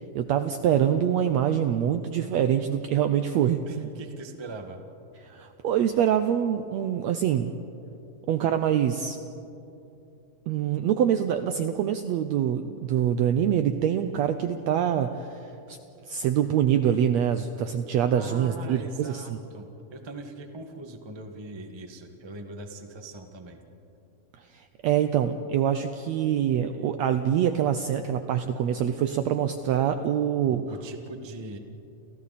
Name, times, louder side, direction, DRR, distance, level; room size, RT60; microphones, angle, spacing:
voice 1, 0.1-3.9 5.2-7.5 8.3-9.2 10.5-15.4 15.7-15.8 16.1-19.4 24.5-30.6, right 9 dB, 80° right, 8 dB, 1.6 m, -25 dB
voice 2, 3.7-4.8 18.1-23.6 30.5-31.6, right 2 dB, 35° right, 4 dB, 0.4 m, -41 dB
29.5 x 29.0 x 4.2 m, 2.9 s
omnidirectional pair, 3.9 m